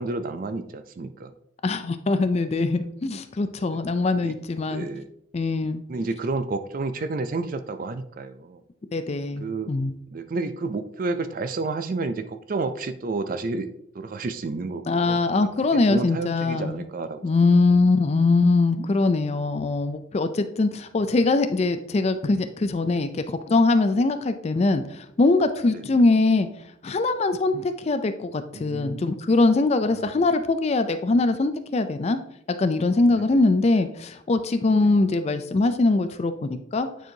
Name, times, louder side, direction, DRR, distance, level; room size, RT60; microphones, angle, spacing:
voice 1, 0.0-1.3 3.7-3.8 4.2-4.4 4.7-5.1 5.9-8.6 9.4-9.7 10.1-15.2 15.7-17.3 17.8-17.9 25.7-25.8 28.5-29.1 29.9-30.3 33.2-33.3 34.8-35.0, right 3 dB, 45° right, 10 dB, 0.4 m, -31 dB
voice 2, 1.6-4.8 5.3-5.8 8.9-9.9 14.9-16.8 17.2-26.5 26.8-32.2 32.5-36.9, left 3 dB, 30° left, 10 dB, 0.3 m, -22 dB
9.0 x 4.5 x 2.7 m, 0.75 s
head